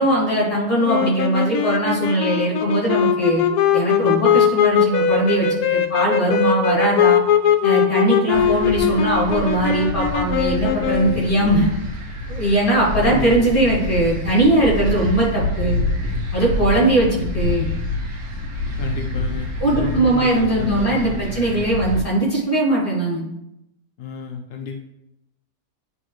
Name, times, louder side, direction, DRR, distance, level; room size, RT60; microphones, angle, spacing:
voice 1, 0.0-3.4 3.7-7.2 7.6-11.7 12.3-15.8 16.3-17.7 19.6-23.2, right 1 dB, 35° left, -5 dB, 2.5 m, -20 dB
sound 1, 0.9-11.3, left 8 dB, 85° left, 1.1 m, -20 dB
sound 2, 8.3-22.0, left 2 dB, 85° right, 1.4 m, -27 dB
voice 2, 13.1-13.5 18.8-21.2 24.0-24.8, left 5 dB, 60° left, 2 dB, 0.6 m, -32 dB
9.5 x 3.3 x 3.1 m, 0.84 s
omnidirectional pair, 1.5 m